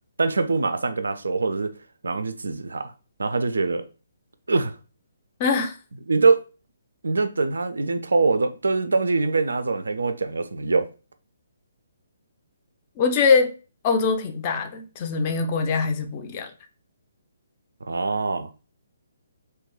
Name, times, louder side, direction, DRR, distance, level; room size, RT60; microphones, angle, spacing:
voice 1, 0.2-1.7 2.0-2.9 3.2-3.8 4.5-4.7 6.1-6.4 7.0-10.9 17.9-18.5, right 3 dB, 65° right, 0.3 m, -23 dB
voice 2, 5.4-5.8 13.0-13.5 13.8-16.5, left 5 dB, 25° left, 0.4 m, -22 dB
2.6 x 2.2 x 3.6 m
figure-of-eight pair, 135°, 0 cm